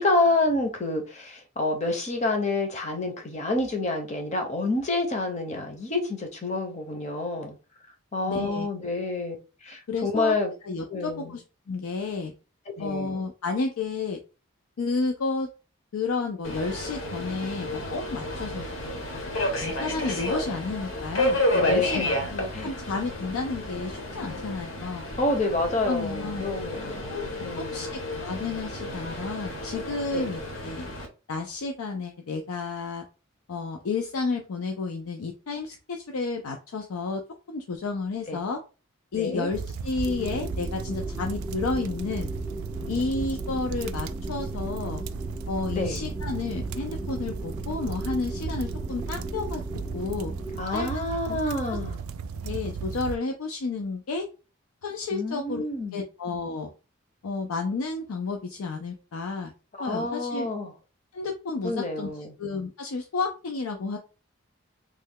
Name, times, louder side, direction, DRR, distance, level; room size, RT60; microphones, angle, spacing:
voice 1, 0.0-7.6 8.1-9.4 9.6-10.5 10.9-11.3 12.8-13.3 21.6-22.8 25.2-27.1 27.4-27.9 30.1-30.3 38.3-38.4 39.2-39.5 45.7-46.1 50.6-52.0 55.1-56.0 59.8-60.7 61.6-62.3, left 2 dB, 30° left, 0.6 m, -28 dB
voice 2, 8.3-8.7 9.9-10.4 10.6-12.3 12.8-14.2 14.8-15.5 15.9-18.6 19.6-25.1 25.8-26.4 27.1-27.2 27.6-30.9 31.3-33.0 33.5-37.2 37.5-38.6 39.1-42.3 42.9-45.0 45.5-49.6 49.9-50.3 50.7-51.4 51.7-51.8 52.4-54.3 54.8-55.6 55.9-56.7 57.2-59.5 59.8-60.5 61.1-62.1 62.4-64.0, left 4 dB, 85° left, 0.5 m, -31 dB
Subway metro underground, 16.4-31.1, left 1 dB, 65° left, 1.0 m, -31 dB
sound 1, 39.5-53.2, right 5 dB, 85° right, 0.3 m, -35 dB
sound 2, 40.0-50.6, right 1 dB, 5° right, 0.3 m, -37 dB
3.1 x 2.2 x 3.6 m
head